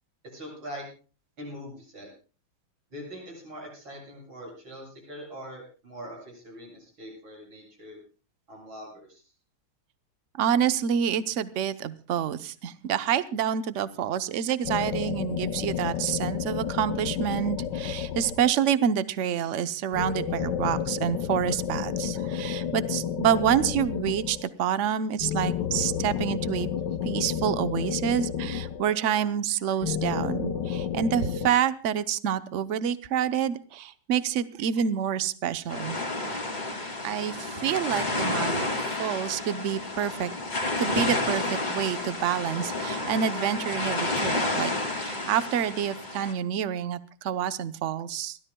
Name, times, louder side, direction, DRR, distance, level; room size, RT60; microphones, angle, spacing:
voice 1, 0.3-0.8 1.4-2.1 2.9-8.0 8.5-9.2, equal, 80° right, -1 dB, 8.9 m, -42 dB
voice 2, 10.4-26.7 27.0-36.0 37.0-38.7 39.0-40.3 40.8-48.4, right 9 dB, 55° right, 12 dB, 0.8 m, -28 dB
sound 1, 14.6-18.8 19.9-24.6 25.2-29.2 29.8-31.5, left 8 dB, 65° left, 1.4 m, -31 dB
sound 2, 35.7-46.3, left 2 dB, 20° left, 2.4 m, -30 dB
30.0 x 13.5 x 2.3 m, 0.37 s
omnidirectional pair, 2.1 m